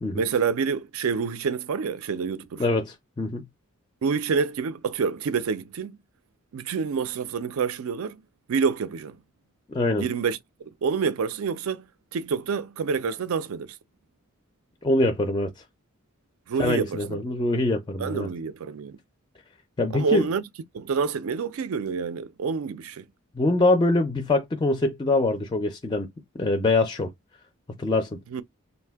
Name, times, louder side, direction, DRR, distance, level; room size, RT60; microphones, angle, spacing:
voice 1, 0.1-2.6 4.0-6.0 6.5-8.2 8.5-9.2 10.0-11.9 12.1-13.7 16.5-17.2 18.0-19.0 19.9-20.4 20.7-23.0 28.3-28.4, right 5 dB, 75° right, 0.4 m, -27 dB
voice 2, 2.6-3.4 9.7-10.1 14.8-15.5 16.6-18.3 19.8-20.2 23.3-26.1 26.4-27.1 27.8-28.2, left 2 dB, 20° left, 0.4 m, -24 dB
2.5 x 2.1 x 3.4 m
head